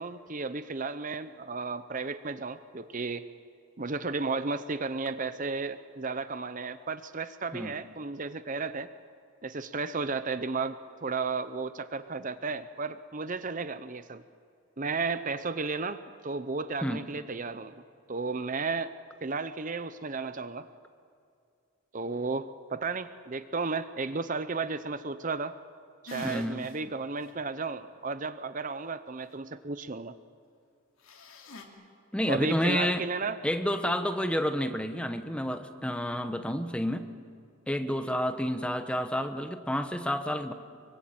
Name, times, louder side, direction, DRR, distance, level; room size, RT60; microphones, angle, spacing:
voice 1, 0.0-3.3 3.8-8.9 9.4-14.2 14.8-17.7 18.1-18.9 19.2-20.7 21.9-25.5 26.0-30.1 32.3-33.4, right 4 dB, 35° right, 12 dB, 0.7 m, -33 dB
sound 1, 26.1-26.8 27.2-27.3 31.0-31.6, left 2 dB, 70° left, 3.0 m, -44 dB
voice 2, 26.2-26.7 32.1-33.1 33.4-37.1 37.7-40.5, equal, 5° left, 8 dB, 1.1 m, -30 dB
24.5 x 24.0 x 8.8 m, 2.4 s
head